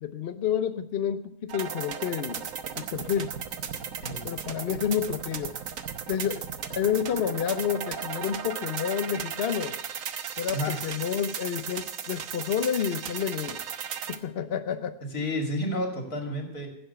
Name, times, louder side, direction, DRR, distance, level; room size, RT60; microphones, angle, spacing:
voice 1, 0.0-2.5 2.8-3.3 4.2-5.6 6.1-6.4 6.7-9.8 10.4-13.6 14.1-15.0, left 8 dB, 55° left, 9 dB, 0.8 m, -29 dB
sound 1, 1.5-14.2, right 7 dB, 60° right, 1.3 m, -36 dB
voice 2, 10.5-10.9 15.1-16.7, left 1 dB, 70° left, 1 dB, 3.1 m, -31 dB
15.5 x 7.9 x 6.8 m, 0.78 s
omnidirectional pair, 1.7 m